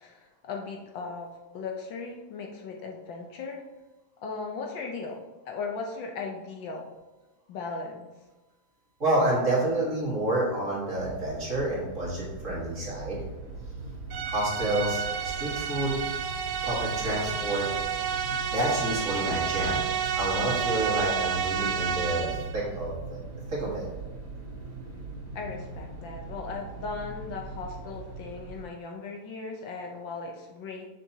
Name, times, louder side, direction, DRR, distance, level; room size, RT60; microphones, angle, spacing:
voice 1, 0.0-3.6 4.2-6.9 7.5-8.1 25.3-30.9, left 4 dB, 70° left, 1 dB, 1.3 m, -37 dB
voice 2, 9.0-13.2 14.3-16.0 16.6-17.7 18.5-19.9 20.1-23.0 23.5-23.9, right 1 dB, 40° right, -5 dB, 1.8 m, -29 dB
sound 1, 11.0-28.6, right 3 dB, 60° right, 2.9 m, -40 dB
sound 2, 14.1-22.6, right 7 dB, 80° right, 1.4 m, -30 dB
7.5 x 6.4 x 2.7 m, 1.1 s
omnidirectional pair, 2.3 m